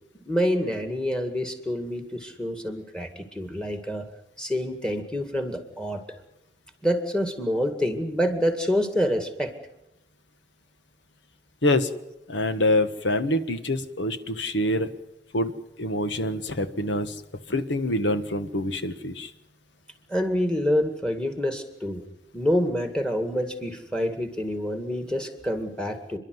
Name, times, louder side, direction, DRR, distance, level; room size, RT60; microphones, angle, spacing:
voice 1, 0.2-4.0 4.4-6.0 6.8-9.5 20.1-22.0 22.3-26.2, equal, 5° left, 7 dB, 2.1 m, -27 dB
voice 2, 12.3-14.9 15.3-15.5 15.8-17.2 17.5-19.3, left 1 dB, 85° left, 10 dB, 1.5 m, -25 dB
29.5 x 11.5 x 9.6 m, 0.90 s
head